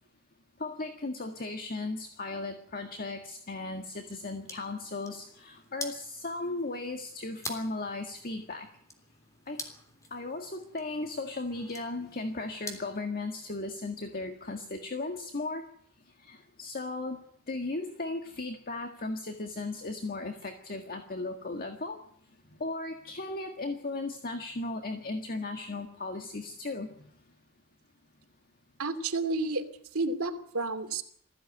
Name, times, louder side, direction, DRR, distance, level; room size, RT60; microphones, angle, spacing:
voice 1, 0.6-8.7 9.5-9.6 10.1-15.6 16.2-17.2 17.5-22.0 22.6-27.1, left 2 dB, 45° left, 5 dB, 1.7 m, -36 dB
sound 1, 4.2-13.0, left 2 dB, 15° left, 3.3 m, -46 dB
voice 2, 28.8-29.6 29.9-31.0, right 3 dB, 70° right, 5 dB, 2.7 m, -30 dB
21.0 x 15.5 x 9.4 m, 0.68 s
head